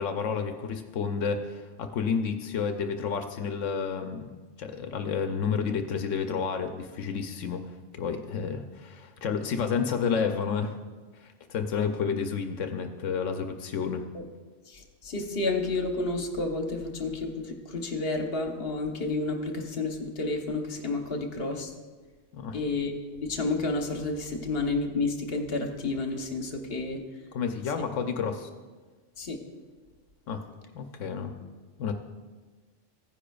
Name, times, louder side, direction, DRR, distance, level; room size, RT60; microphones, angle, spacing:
voice 1, 0.0-4.3 4.6-7.6 7.9-10.8 11.2-14.0 22.3-22.6 27.3-28.5 30.3-30.4 30.7-31.3 31.8-31.9, left 6 dB, 85° left, 6 dB, 1.0 m, -30 dB
voice 2, 14.7-21.7 22.5-27.0 29.2-29.4, left 3 dB, 55° left, 3 dB, 1.2 m, -30 dB
15.5 x 9.9 x 2.3 m, 1.4 s
omnidirectional pair, 1.3 m